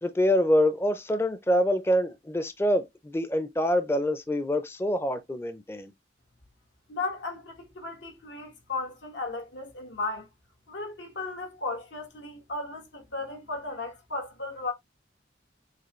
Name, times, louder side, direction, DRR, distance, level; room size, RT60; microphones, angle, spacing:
voice 1, 0.0-5.9, equal, 15° left, 0.4 m, -25 dB
voice 2, 6.9-10.3 10.7-14.7, left 3 dB, 85° left, 1.5 m, -35 dB
6.6 x 2.3 x 3.0 m
head